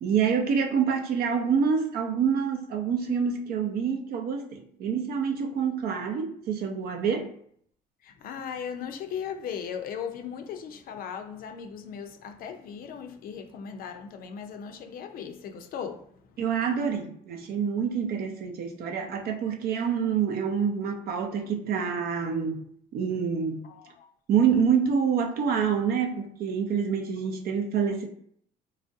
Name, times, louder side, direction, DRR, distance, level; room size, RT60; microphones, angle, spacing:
voice 1, 0.0-7.3 16.4-22.6 22.9-23.6 24.3-28.1, right 6 dB, 65° right, 0.6 m, -27 dB
voice 2, 8.0-16.4 23.6-24.1, left 7 dB, 60° left, 0.4 m, -38 dB
3.0 x 2.4 x 2.6 m
cardioid pair, 110°, 17 cm